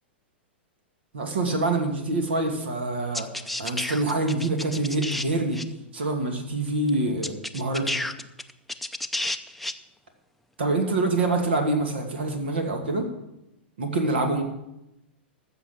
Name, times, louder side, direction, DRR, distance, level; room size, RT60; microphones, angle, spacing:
voice 1, 1.1-3.3 3.6-5.6 5.9-8.0 10.6-13.1 13.8-14.4, right 2 dB, 70° right, 5 dB, 2.4 m, -26 dB
sound 1, 3.1-5.3 5.5-5.6 6.9-7.0 7.2-9.7, left 1 dB, ahead, 0.6 m, -31 dB
14.0 x 6.8 x 7.3 m, 0.89 s
figure-of-eight pair, 105°, 6 cm